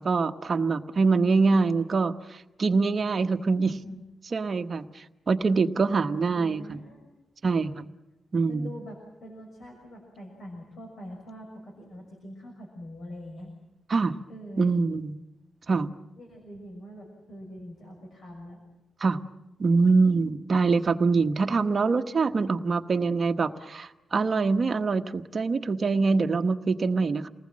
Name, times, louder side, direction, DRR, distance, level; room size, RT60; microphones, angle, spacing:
voice 1, 0.0-3.7 4.3-6.8 7.4-7.8 8.3-8.7 13.9-14.1 14.6-15.1 15.7-15.9 19.0-19.2 19.6-27.3, right 4 dB, 40° right, 7 dB, 1.2 m, -24 dB
voice 2, 3.6-4.0 5.8-7.1 8.5-13.5 14.3-14.7 16.1-18.6, equal, 60° left, 1 dB, 6.4 m, -43 dB
29.0 x 19.5 x 7.6 m, 0.99 s
wide cardioid pair, 145°, 0 cm